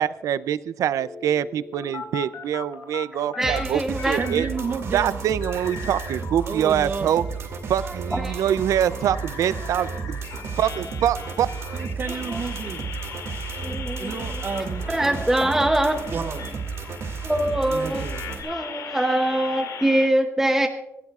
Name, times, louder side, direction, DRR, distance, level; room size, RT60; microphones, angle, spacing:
voice 1, 0.0-3.8 4.1-4.4 4.9-7.2 7.7-10.2 10.6-11.5, right 10 dB, 85° right, 16 dB, 0.4 m, -24 dB
sound 1, 1.0-3.6 4.0-6.5 6.9-20.1, left 7 dB, 85° left, 2.4 m, -39 dB
voice 2, 3.4-4.2 8.1-8.4 13.6-14.1 14.9-16.1 17.2-18.1 18.4-20.7, right 1 dB, 5° right, 5 dB, 0.7 m, -23 dB
sound 2, 3.4-18.4, right 5 dB, 60° right, 2.3 m, -33 dB
voice 3, 4.2-5.2 6.5-7.1 11.7-12.9 14.0-15.2 16.1-16.5 17.7-18.2, right 5 dB, 40° right, 11 dB, 0.7 m, -31 dB
26.0 x 12.0 x 2.4 m, 0.97 s
wide cardioid pair, 165°, 5 cm